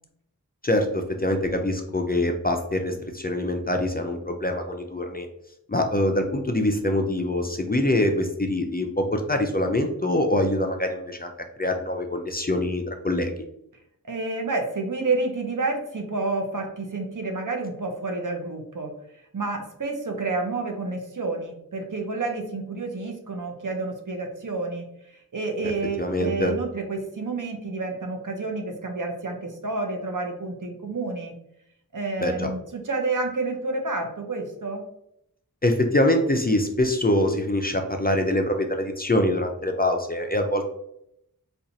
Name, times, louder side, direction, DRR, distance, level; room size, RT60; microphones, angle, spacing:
voice 1, 0.6-5.3 5.7-11.3 11.6-13.3 25.6-26.5 32.2-32.5 35.6-40.7, left 1 dB, 25° left, 4 dB, 0.4 m, -24 dB
voice 2, 14.1-18.9 19.3-24.9 25.1-31.3 31.9-34.8, right 3 dB, 55° right, 3 dB, 0.7 m, -29 dB
4.3 x 2.4 x 2.6 m, 0.77 s
wide cardioid pair, 40°, 36 cm